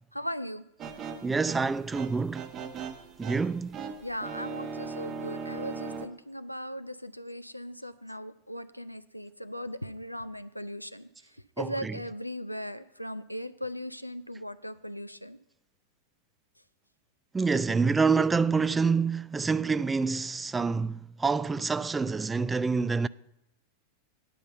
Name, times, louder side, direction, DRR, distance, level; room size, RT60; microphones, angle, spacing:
voice 1, 0.1-0.6 4.0-15.4, equal, 90° left, 0.4 m, -38 dB
sound 1, 0.8-6.1, right 5 dB, 30° right, 1.0 m, -39 dB
voice 2, 1.2-2.5 3.2-3.8 11.6-11.9 17.3-23.1, right 4 dB, 10° right, 0.3 m, -27 dB
9.9 x 5.4 x 7.5 m
figure-of-eight pair, 90°, 0 cm